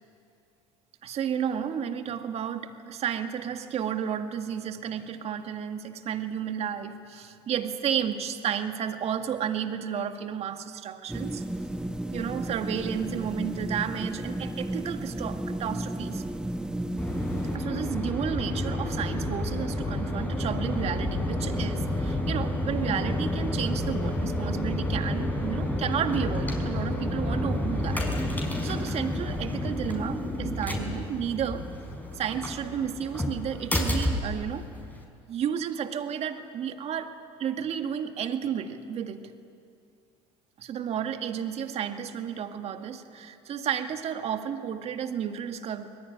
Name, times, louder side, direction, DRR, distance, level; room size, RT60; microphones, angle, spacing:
voice 1, 1.0-11.4 12.1-16.2 17.5-28.0 28.4-31.7 32.1-34.7 35.3-37.1 37.4-39.2 40.6-46.0, right 8 dB, 50° right, 7 dB, 1.9 m, -32 dB
sound 1, 11.1-17.6, right 1 dB, 5° right, 1.1 m, -33 dB
sound 2, 17.0-35.0, left 1 dB, 10° left, 5.5 m, -30 dB
24.5 x 20.0 x 9.8 m, 2.4 s
hypercardioid pair, 80°, 14 cm